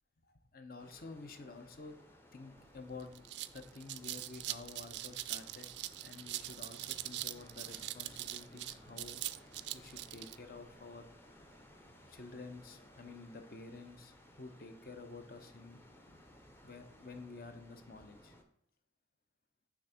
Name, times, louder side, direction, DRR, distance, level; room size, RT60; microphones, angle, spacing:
voice 1, 0.3-2.0 2.3-3.3 3.5-5.7 6.0-11.3 12.1-15.8 16.1-16.2 16.6-18.3, left 3 dB, 50° left, 8 dB, 0.7 m, -50 dB
sound 1, 0.8-18.4, equal, 15° left, 0.6 m, -59 dB
sound 2, 2.6-2.7 3.0-10.4, right 15 dB, 75° right, 0.3 m, -42 dB
6.2 x 3.5 x 5.6 m, 0.72 s
head